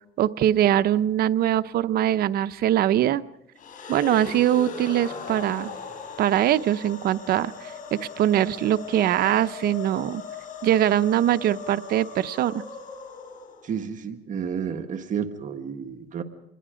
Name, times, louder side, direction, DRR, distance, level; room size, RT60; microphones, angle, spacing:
voice 1, 0.2-3.2 3.9-5.7 6.2-10.2 10.6-12.6, right 11 dB, 65° right, 14 dB, 0.8 m, -22 dB
sound 1, 3.6-13.8, left 5 dB, 50° left, 4.7 m, -39 dB
voice 2, 13.6-16.2, right 7 dB, 50° right, 6 dB, 1.7 m, -31 dB
27.0 x 21.0 x 5.1 m, 0.91 s
cardioid pair, 110°, 17 cm